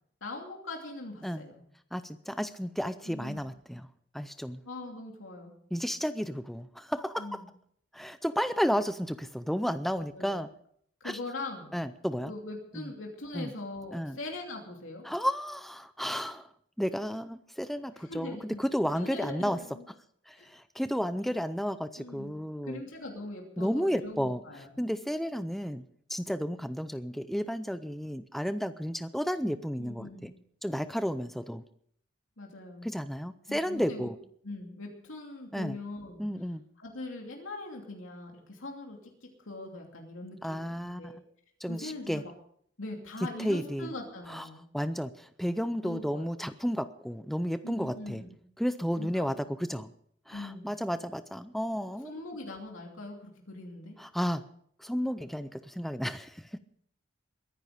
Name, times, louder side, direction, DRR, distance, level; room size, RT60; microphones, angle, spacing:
voice 1, 0.2-1.6 3.0-3.5 4.6-5.6 7.2-7.5 9.9-10.4 11.0-11.8 12.3-15.0 18.0-19.9 20.3-20.5 22.0-22.4 22.6-24.7 29.8-30.4 32.4-32.9 33.5-34.1 34.4-36.2 36.8-41.2 41.7-42.3 42.8-44.7 45.8-46.3 47.6-48.4 49.0-49.4 50.3-50.7 51.9-54.0, left 2 dB, 90° left, 1 dB, 2.8 m, -42 dB
voice 2, 1.9-3.9 4.1-4.6 5.7-7.4 7.9-10.5 11.0-11.2 11.7-12.3 12.7-12.9 13.3-13.5 13.9-14.2 15.0-16.5 16.8-19.6 20.3-22.8 23.6-24.4 24.8-25.8 26.1-30.3 30.6-31.6 32.8-34.2 35.5-35.8 36.2-36.6 40.4-41.2 41.6-42.2 43.4-43.9 44.3-44.5 44.7-48.2 48.6-49.9 50.3-52.1 54.0-54.4 54.8-56.6, equal, ahead, 11 dB, 0.5 m, -32 dB
22.0 x 10.5 x 5.0 m, 0.65 s
head